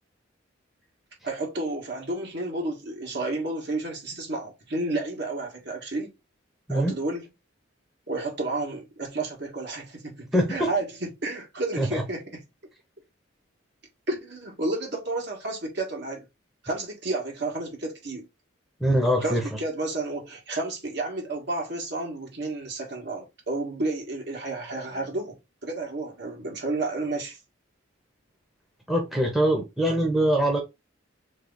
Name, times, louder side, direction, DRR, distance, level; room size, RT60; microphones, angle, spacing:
voice 1, 1.2-6.1 6.7-7.3 8.1-12.4 14.1-16.2 16.6-18.3 19.2-27.4, right 2 dB, 55° right, 1.8 m, -31 dB
voice 2, 10.3-10.7 11.8-12.0 18.8-19.6 28.9-30.6, right 1 dB, ahead, 0.9 m, -23 dB
3.5 x 3.3 x 3.9 m
head